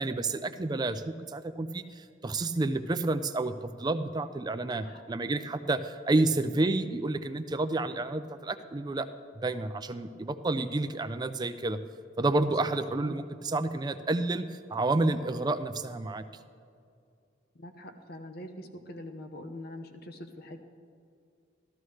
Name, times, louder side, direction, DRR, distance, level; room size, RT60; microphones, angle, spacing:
voice 1, 0.0-9.1 9.4-11.8 12.2-16.2, right 2 dB, 20° right, 10 dB, 0.4 m, -30 dB
voice 2, 17.5-20.6, left 1 dB, 50° left, 7 dB, 0.9 m, -44 dB
14.0 x 12.5 x 3.2 m, 2.4 s
head